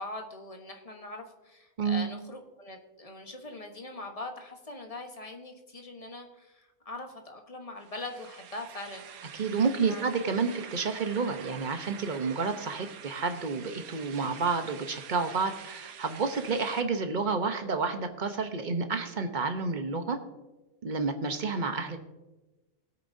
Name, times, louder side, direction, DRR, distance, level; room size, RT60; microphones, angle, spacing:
voice 1, 0.0-9.4 9.8-10.1, left 2 dB, 25° left, 3 dB, 1.2 m, -42 dB
sound 1, 7.8-16.8, right 8 dB, 80° right, 1.2 m, -47 dB
voice 2, 9.3-20.2 20.8-22.0, right 4 dB, 40° right, 6 dB, 0.9 m, -30 dB
20.5 x 8.6 x 2.7 m, 1.1 s
omnidirectional pair, 1.5 m